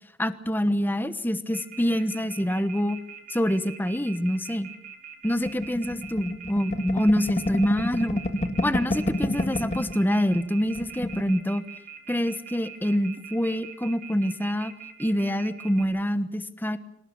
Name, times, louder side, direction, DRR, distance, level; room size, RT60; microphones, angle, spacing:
voice 1, 0.2-3.0 3.3-4.7 5.2-8.2 8.6-11.6 12.1-14.7 15.0-16.8, equal, 10° left, 12 dB, 1.2 m, -26 dB
Telephone, 1.5-15.8, right 8 dB, 45° right, 3.8 m, -42 dB
sound 1, 5.5-10.0 10.3-10.4 10.7-11.3, left 1 dB, 35° left, 2.0 m, -29 dB
26.0 x 18.5 x 7.3 m, 0.82 s
head